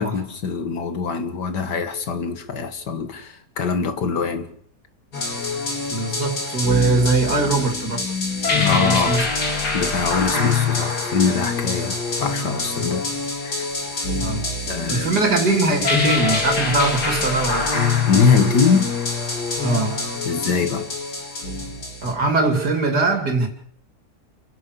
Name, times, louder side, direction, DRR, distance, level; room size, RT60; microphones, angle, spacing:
voice 1, 0.0-4.5 8.6-9.2 9.7-13.0 13.4-13.7 14.7-15.2 18.1-18.9 20.3-20.9, left 5 dB, 90° left, 2.3 m, -23 dB
sound 1, 5.1-22.1, left 4 dB, 70° left, 4.0 m, -25 dB
voice 2, 5.9-8.1 8.5-9.3 14.2-14.4 14.9-17.7 19.6-20.0 22.0-23.5, right 3 dB, 75° right, 3.5 m, -21 dB
28.0 x 11.5 x 8.3 m
omnidirectional pair, 1.7 m